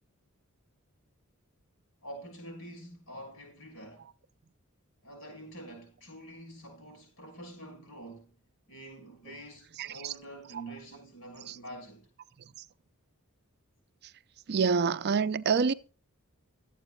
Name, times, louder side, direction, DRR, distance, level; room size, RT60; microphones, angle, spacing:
voice 1, 2.0-4.1 5.0-8.3 8.7-12.1, right 1 dB, 70° left, 6.5 m, -46 dB
voice 2, 9.8-10.1 11.5-11.6 14.5-15.7, right 5 dB, 50° right, 0.4 m, -27 dB
23.5 x 8.1 x 2.3 m
head